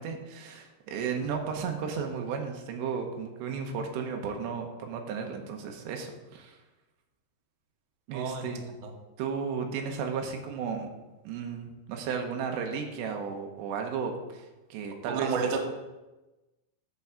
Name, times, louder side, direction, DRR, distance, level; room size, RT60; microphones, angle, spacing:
voice 1, 0.0-6.6 8.1-8.6 9.2-10.9 11.3-15.5, right 6 dB, 90° right, 3 dB, 3.2 m, -34 dB
voice 2, 8.1-8.5 8.8-8.9 15.1-15.7, right 5 dB, 70° right, 2 dB, 2.0 m, -30 dB
8.1 x 4.6 x 7.0 m, 1.1 s
omnidirectional pair, 4.9 m